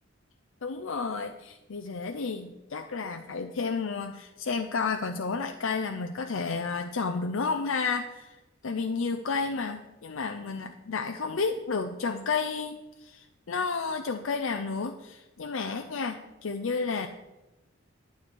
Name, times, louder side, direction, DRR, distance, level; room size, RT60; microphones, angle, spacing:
voice 1, 0.6-17.1, left 4 dB, 75° left, 5 dB, 0.6 m, -31 dB
9.6 x 8.9 x 4.5 m, 1.0 s
head